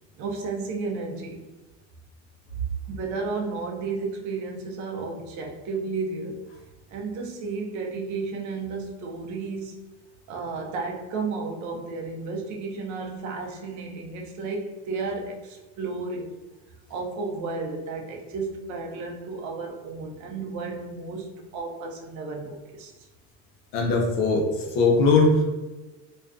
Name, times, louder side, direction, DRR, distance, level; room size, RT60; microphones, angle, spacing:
voice 1, 0.2-1.5 2.9-6.5 6.9-9.8 10.3-16.4 16.9-22.9, right 4 dB, 55° right, 1 dB, 0.6 m, -33 dB
voice 2, 23.7-25.4, left 3 dB, 65° left, 1 dB, 0.7 m, -20 dB
2.4 x 2.2 x 2.4 m, 1.2 s
supercardioid pair, 100°, 35 cm